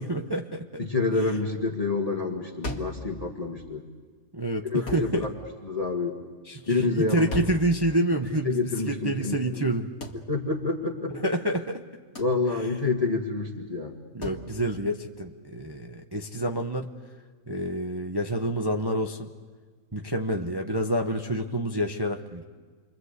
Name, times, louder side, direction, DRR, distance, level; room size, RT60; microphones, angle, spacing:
voice 1, 0.0-0.9 4.3-5.3 6.5-9.9 11.2-11.8 14.1-16.9 17.5-19.3 19.9-22.4, right 1 dB, 20° right, 3 dB, 0.8 m, -28 dB
voice 2, 0.8-3.8 4.6-5.3 5.6-6.2 6.7-7.3 8.4-9.6 10.3-11.1 12.2-13.9, left 3 dB, 20° left, 1 dB, 1.9 m, -28 dB
sound 1, 2.6-3.1 4.9-5.2 7.3-7.7 10.0-10.3 12.1-12.4 14.2-14.5, left 1 dB, 60° left, 2.3 m, -35 dB
28.5 x 23.0 x 8.2 m, 1.5 s
omnidirectional pair, 1.7 m